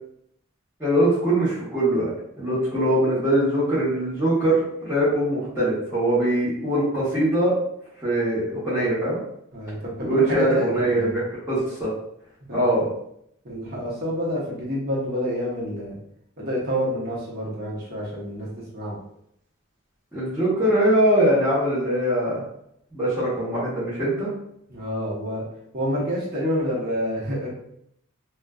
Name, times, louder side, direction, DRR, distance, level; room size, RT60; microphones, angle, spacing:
voice 1, 0.8-2.1 2.4-7.5 8.0-9.2 10.0-11.9 12.5-12.9 20.1-22.4 22.9-24.3, right 1 dB, 15° right, -13 dB, 0.8 m, -22 dB
voice 2, 9.5-11.2 12.5-12.6 13.4-16.0 16.4-18.5 18.7-19.0 24.7-25.5 25.7-27.5, equal, 45° right, -6 dB, 0.9 m, -28 dB
2.5 x 2.2 x 2.2 m, 0.72 s
head